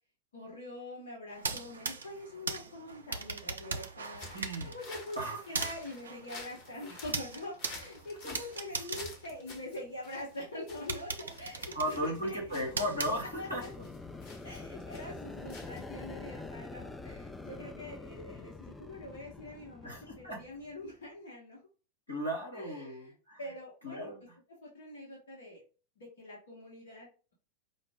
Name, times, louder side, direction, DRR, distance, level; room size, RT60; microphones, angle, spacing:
voice 1, 0.3-4.3 4.6-5.2 5.5-12.4 13.4-13.7 14.4-21.6 22.5-23.1 23.4-24.1 24.6-25.6 26.0-27.1, left 1 dB, 65° left, -4 dB, 1.3 m, -44 dB
sound 1, 1.3-10.1 10.5-10.6 10.9-13.7, right 4 dB, 70° right, 0.4 m, -40 dB
sound 2, 4.2-16.2, left 3 dB, 45° left, 1.2 m, -50 dB
voice 2, 4.3-4.7 5.1-5.4 8.2-8.4 8.9-9.0 11.7-13.6 19.8-20.4 22.1-23.4 23.8-24.4, equal, 85° left, -3 dB, 1.7 m, -36 dB
sound 3, 11.1-20.9, left 3 dB, 10° left, 0.4 m, -47 dB
5.1 x 2.0 x 3.5 m, 0.35 s
figure-of-eight pair, 90°, 0 cm